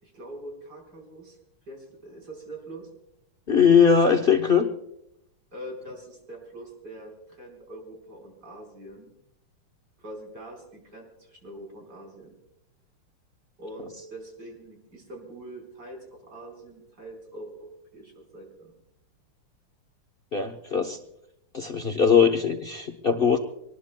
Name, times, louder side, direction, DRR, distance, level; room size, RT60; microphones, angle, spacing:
voice 1, 0.0-1.4 1.6-2.9 5.5-9.1 10.0-12.3 13.6-18.7, right 1 dB, 50° right, 0 dB, 5.0 m, -43 dB
voice 2, 3.5-4.7 20.3-21.0 21.5-23.4, left 6 dB, 50° left, 6 dB, 0.6 m, -20 dB
25.5 x 19.5 x 2.2 m, 0.81 s
omnidirectional pair, 2.4 m